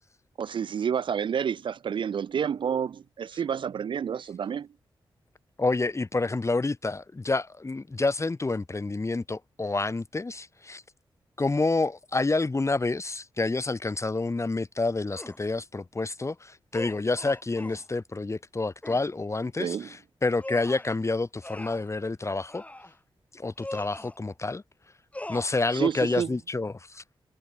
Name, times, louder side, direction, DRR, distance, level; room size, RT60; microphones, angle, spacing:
voice 1, 0.4-4.7 19.6-19.9 25.7-26.3, right 7 dB, 60° right, 0.4 m, -29 dB
voice 2, 5.6-10.8 11.4-19.8 20.2-22.6 23.3-24.6 25.3-27.0, left 3 dB, 30° left, 1.6 m, -28 dB
sound 1, 15.1-15.4 16.7-17.9 18.8-19.1 20.4-20.9 21.4-21.9 22.5-22.9 23.6-24.2 25.1-25.5, left 1 dB, 15° left, 1.4 m, -41 dB
cardioid pair, 55°, 10 cm